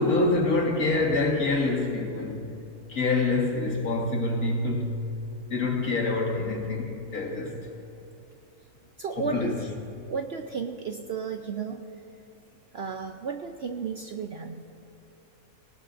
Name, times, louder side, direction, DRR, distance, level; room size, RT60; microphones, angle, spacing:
voice 1, 0.0-2.5 2.9-4.9 5.5-7.6 9.2-9.6, left 3 dB, 75° left, 2.2 m, -26 dB
voice 2, 9.0-9.7 10.1-11.8 12.7-14.6, right 5 dB, 60° right, 0.7 m, -33 dB
18.5 x 18.5 x 2.6 m
omnidirectional pair, 1.6 m